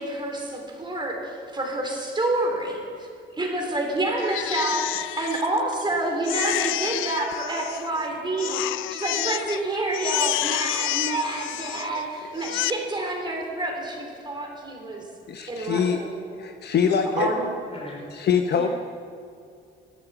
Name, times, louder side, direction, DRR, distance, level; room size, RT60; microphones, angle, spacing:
voice 1, 0.0-3.1 3.4-15.1 15.5-16.2 17.2-17.4, right 2 dB, 25° right, 0 dB, 3.3 m, -28 dB
Crying sobbing, 4.2-5.9 6.2-8.0 8.4-9.6 9.9-12.0 12.4-12.7, left 15 dB, 85° left, 0.4 m, -29 dB
voice 2, 15.3-16.0 16.4-17.3 18.1-18.7, left 7 dB, 55° left, 6 dB, 0.8 m, -23 dB
voice 3, 17.1-18.1 18.6-18.7, left 1 dB, 30° left, -1 dB, 4.4 m, -37 dB
13.5 x 8.8 x 8.1 m, 2.4 s
cardioid pair, 90°, 20 cm